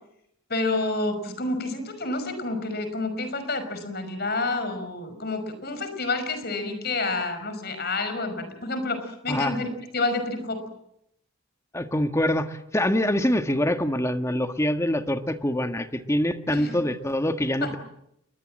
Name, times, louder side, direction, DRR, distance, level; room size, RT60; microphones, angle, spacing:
voice 1, 0.5-9.7 9.9-10.6 16.5-16.7 17.6-17.7, left 2 dB, 50° left, 9 dB, 5.5 m, -29 dB
voice 2, 11.7-17.8, left 1 dB, 15° left, 7 dB, 1.5 m, -25 dB
29.0 x 22.0 x 7.6 m, 0.78 s
head